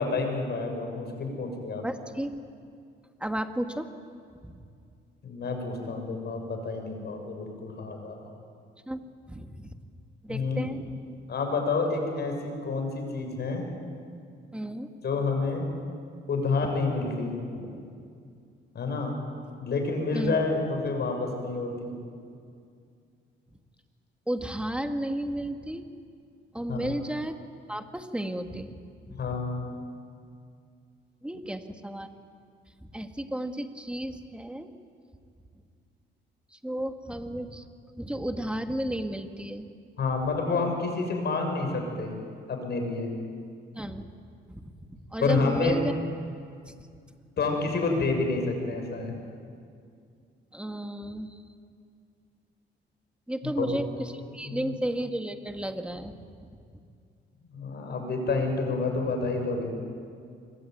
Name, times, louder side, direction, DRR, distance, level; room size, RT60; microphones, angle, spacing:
voice 1, 0.0-1.8 5.2-8.3 10.3-10.7 11.3-13.7 15.0-15.7 16.3-17.7 18.7-19.1 19.6-21.9 26.7-27.0 29.1-29.7 40.0-42.1 42.5-43.1 45.2-45.8 47.4-49.1 53.6-53.7 54.4-54.7 57.5-59.8, left 3 dB, 55° left, 3 dB, 7.0 m, -29 dB
voice 2, 1.8-2.4 3.2-3.9 4.4-4.6 8.9-9.0 9.3-9.7 10.2-10.8 14.5-14.9 20.1-20.4 24.3-25.9 26.5-27.4 27.7-28.7 29.0-29.2 31.2-32.1 32.8-34.7 36.5-37.6 38.0-39.7 43.8-44.0 44.5-45.9 50.5-51.4 53.3-56.6, right 1 dB, 5° right, 6 dB, 2.1 m, -33 dB
26.0 x 22.5 x 9.5 m, 2.3 s
cardioid pair, 90°, 20 cm